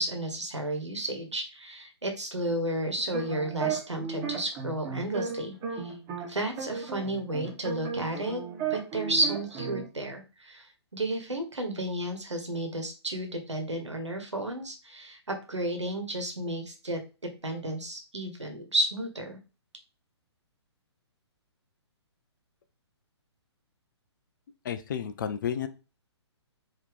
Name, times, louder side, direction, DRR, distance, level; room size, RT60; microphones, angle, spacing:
voice 1, 0.0-6.0 6.3-8.4 8.7-17.0 17.4-19.4, right 1 dB, 80° right, 4 dB, 1.4 m, -32 dB
sound 1, 3.0-6.3 6.6-9.8, right 6 dB, 25° right, 1.3 m, -34 dB
voice 2, 24.6-25.7, left 8 dB, 45° left, 10 dB, 0.5 m, -31 dB
4.8 x 3.1 x 3.5 m, 0.31 s
figure-of-eight pair, 125°, 15 cm